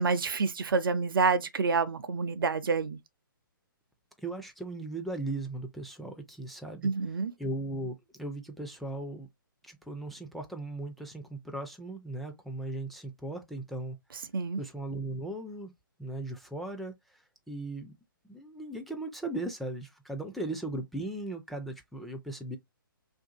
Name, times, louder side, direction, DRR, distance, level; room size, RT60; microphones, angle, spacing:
voice 1, 0.0-3.0 6.8-7.3 14.3-14.6, right 4 dB, 75° right, 0.6 m, -28 dB
voice 2, 4.2-6.9 7.4-9.3 9.6-14.0 14.6-15.7 16.0-18.0 18.2-22.6, right 2 dB, ahead, 0.4 m, -37 dB
2.6 x 2.4 x 3.7 m
figure-of-eight pair, 130°, 12 cm